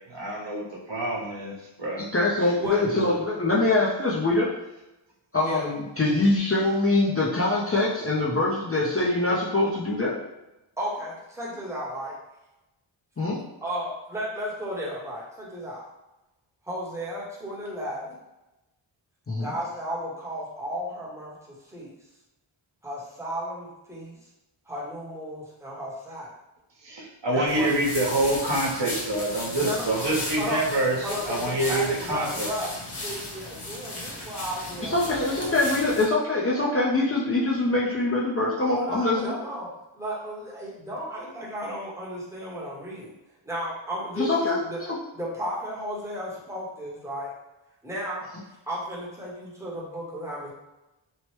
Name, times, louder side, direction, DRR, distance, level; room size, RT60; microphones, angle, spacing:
voice 1, 0.1-2.1 2.4-2.5 2.9-3.1 26.8-32.5, right 1 dB, 60° right, -5 dB, 1.0 m, -27 dB
voice 2, 2.0-4.5 5.3-10.2 13.2-13.4 19.3-19.5 34.8-39.3 44.2-44.6, left 2 dB, 30° left, -6 dB, 0.5 m, -24 dB
voice 3, 10.8-12.2 13.6-15.8 16.6-18.2 19.4-21.9 22.8-24.2 24.7-26.3 27.3-27.7 29.5-30.7 31.0-32.7 33.0-35.6 38.7-43.1 43.4-44.8 45.1-47.3 47.8-48.3 48.7-50.5, equal, 5° right, -5 dB, 0.8 m, -34 dB
sound 1, 27.5-36.0, left 1 dB, 55° left, 0.9 m, -36 dB
3.1 x 2.0 x 3.0 m, 0.97 s
wide cardioid pair, 80°, 49 cm